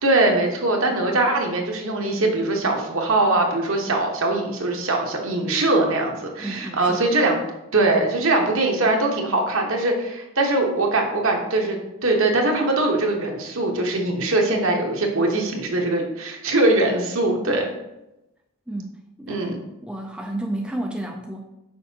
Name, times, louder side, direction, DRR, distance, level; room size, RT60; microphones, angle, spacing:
voice 1, 0.0-7.4 7.7-17.7 19.3-19.6, right 2 dB, 65° right, 1 dB, 1.1 m, -22 dB
voice 2, 6.4-7.1 18.7-19.5 19.8-21.4, right 1 dB, 5° right, 1 dB, 0.4 m, -31 dB
6.3 x 5.3 x 2.8 m, 0.93 s
head